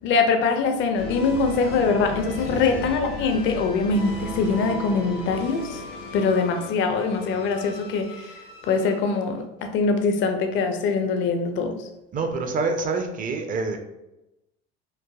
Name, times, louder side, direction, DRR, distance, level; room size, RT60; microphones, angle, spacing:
voice 1, 0.0-5.8 6.1-8.3 8.6-11.8, left 4 dB, 40° left, 5 dB, 0.4 m, -23 dB
sound 1, 0.9-9.4, left 1 dB, 85° left, 0.9 m, -36 dB
voice 2, 2.5-2.9 12.1-13.8, right 3 dB, 30° right, 5 dB, 0.4 m, -27 dB
3.2 x 2.1 x 2.2 m, 0.94 s
hypercardioid pair, 75°, 29 cm